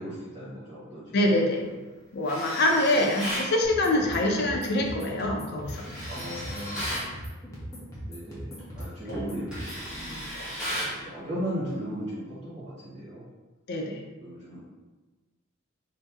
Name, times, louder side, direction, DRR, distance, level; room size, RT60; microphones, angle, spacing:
voice 1, 0.0-1.4 2.7-2.8 6.1-6.8 8.1-13.3 14.2-14.6, equal, 30° right, -11 dB, 0.9 m, -37 dB
voice 2, 1.1-1.6 2.1-5.9 9.1-9.2 13.7-14.0, left 1 dB, 50° left, 1 dB, 0.5 m, -25 dB
Tools, 2.2-3.5 5.7-7.1 8.6-8.8 9.1-11.0, equal, 5° right, 1.2 m, -35 dB
sound 1, 3.6-9.8, equal, 15° left, 0.7 m, -40 dB
2.8 x 2.7 x 3.4 m, 1.2 s
head